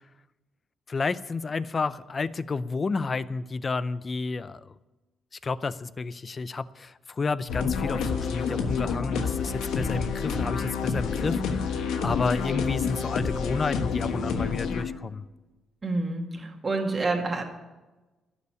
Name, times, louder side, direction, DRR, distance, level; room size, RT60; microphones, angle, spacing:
voice 1, 0.9-4.6 5.4-15.2, left 4 dB, 35° left, 16 dB, 0.5 m, -31 dB
sound 1, 7.5-14.8, left 5 dB, 90° left, 1.3 m, -28 dB
voice 2, 15.8-17.4, right 3 dB, 30° right, 2 dB, 2.1 m, -28 dB
12.0 x 6.9 x 9.6 m, 1.1 s
cardioid pair, 100°, 0 cm